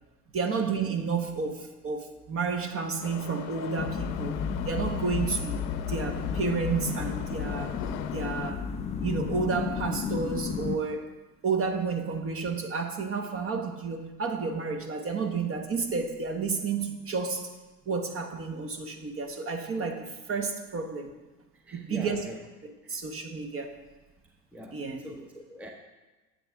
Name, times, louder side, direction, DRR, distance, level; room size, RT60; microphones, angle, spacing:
voice 1, 0.3-4.4 4.6-5.6 5.9-7.7 8.1-8.7 9.0-11.1 11.4-17.5 17.9-21.1 21.7-22.3 22.6-23.8 24.7-25.0, right 5 dB, 25° right, 6 dB, 1.1 m, -31 dB
Subway metro underground, 3.0-8.5, left 9 dB, 55° left, 0.9 m, -42 dB
sound 1, 3.8-10.8, left 7 dB, 15° left, 0.4 m, -32 dB
voice 2, 21.7-22.4 24.5-25.7, equal, 5° right, 1 dB, 0.8 m, -43 dB
10.0 x 7.8 x 3.5 m, 1.2 s
hypercardioid pair, 85°, 49 cm